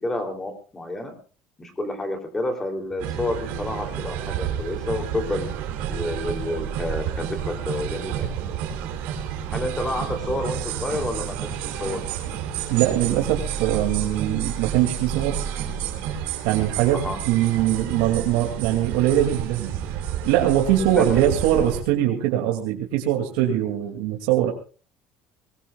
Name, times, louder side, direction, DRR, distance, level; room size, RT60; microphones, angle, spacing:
voice 1, 0.0-1.1 1.6-5.5 5.9-8.3 9.5-12.0 16.9-17.2 20.9-21.4, left 1 dB, 10° left, 5 dB, 3.3 m, -29 dB
sound 1, 3.0-21.8, right 9 dB, 70° right, 3.5 m, -30 dB
voice 2, 12.7-15.4 16.4-19.7 20.3-24.5, right 12 dB, 85° right, 1 dB, 2.7 m, -22 dB
22.5 x 20.5 x 2.5 m, 0.37 s
cardioid pair, 160°, 3 cm